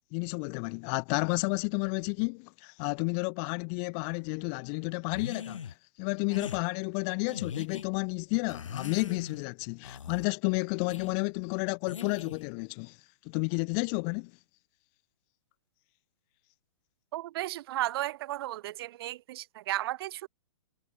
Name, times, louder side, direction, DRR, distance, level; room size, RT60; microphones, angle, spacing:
voice 1, 0.1-13.0 13.2-14.3, left 40 dB or more, 35° left, 1.0 m, -31 dB
sound 1, 5.1-5.7 6.3-6.6 7.3-7.9 8.5-9.4 9.8-10.3 10.9-11.1 11.9-12.5, left 7 dB, 75° left, 1.3 m, -40 dB
voice 2, 17.1-20.3, right 15 dB, 50° right, 0.5 m, -34 dB
hypercardioid pair, 120°, 16 cm